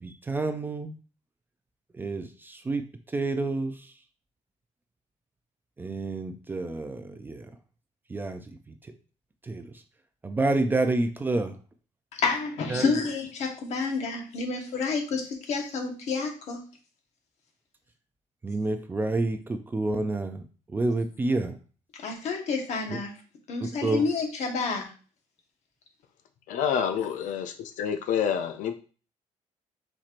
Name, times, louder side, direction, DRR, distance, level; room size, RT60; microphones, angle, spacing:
voice 1, 0.0-0.9 1.9-2.8 3.1-3.7 5.8-7.5 8.1-8.4 9.4-9.7 10.2-11.5 12.7-13.0 18.4-20.4 20.7-21.6 23.6-24.0, right 2 dB, 15° right, 7 dB, 0.3 m, -28 dB
voice 2, 12.1-16.6 22.0-23.1 23.5-24.9, left 4 dB, 60° left, 2 dB, 1.2 m, -29 dB
voice 3, 26.5-28.8, left 8 dB, 85° left, 7 dB, 0.5 m, -28 dB
4.5 x 4.2 x 2.5 m, 0.38 s
cardioid pair, 170°, 13 cm